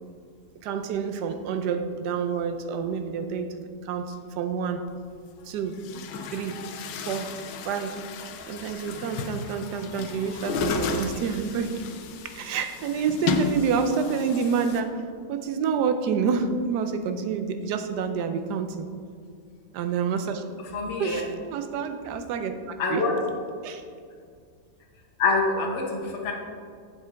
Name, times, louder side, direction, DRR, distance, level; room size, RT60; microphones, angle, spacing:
voice 1, 0.6-4.9 5.4-5.8 6.3-6.6 7.0-7.3 7.6-8.0 8.5-11.8 12.2-18.9 19.7-20.4 21.0-23.0 23.6-23.8, right 6 dB, 75° right, 8 dB, 1.2 m, -28 dB
Chatter / Gurgling / Tap, 4.9-5.0 5.7-14.8, left 5 dB, 80° left, 1.3 m, -33 dB
voice 2, 20.7-21.2 22.8-23.2 25.2-26.3, left 3 dB, 45° left, 0 dB, 1.2 m, -25 dB
7.4 x 7.4 x 3.5 m, 2.2 s
omnidirectional pair, 1.9 m